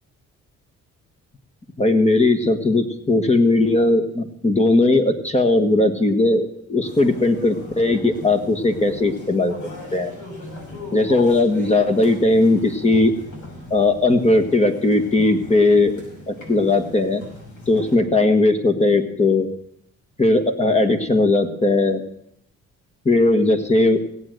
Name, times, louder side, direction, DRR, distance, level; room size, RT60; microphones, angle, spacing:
voice 1, 1.8-6.4 6.7-9.5 9.9-10.1 10.9-13.1 13.7-15.9 16.3-17.2 17.7-19.5 20.2-22.0 23.0-24.0, left 2 dB, 20° left, 7 dB, 1.4 m, -18 dB
sound 1, 6.8-17.9, left 2 dB, 75° left, 6.1 m, -38 dB
17.0 x 8.0 x 7.7 m, 0.72 s
cardioid pair, 90°, 30 cm